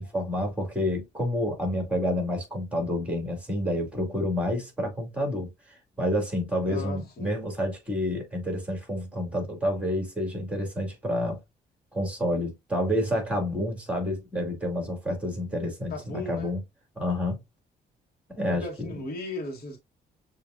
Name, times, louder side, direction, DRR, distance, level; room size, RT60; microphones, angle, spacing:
voice 1, 0.0-11.4 11.9-16.6 17.0-17.4 18.3-19.0, left 1 dB, 5° right, 2.4 m, -29 dB
voice 2, 6.7-7.4 15.9-16.5 18.5-19.8, left 2 dB, 55° left, 1.2 m, -36 dB
6.8 x 2.5 x 2.5 m
cardioid pair, 100°, 19 cm